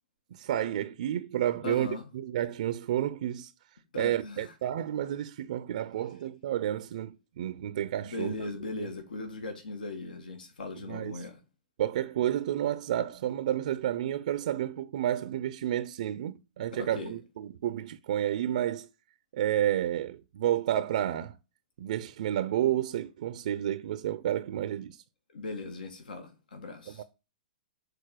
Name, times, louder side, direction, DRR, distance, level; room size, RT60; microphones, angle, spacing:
voice 1, 0.3-1.9 2.1-3.5 3.9-8.3 8.8-8.9 10.9-11.2 11.8-18.9 19.3-21.4 21.8-25.0 26.9-27.0, right 11 dB, 60° right, 0.5 m, -30 dB
voice 2, 1.6-2.1 3.9-4.5 8.0-11.4 16.7-17.1 25.3-27.0, left 3 dB, 80° left, 1.7 m, -38 dB
6.7 x 4.0 x 6.4 m
hypercardioid pair, 140°, 5 cm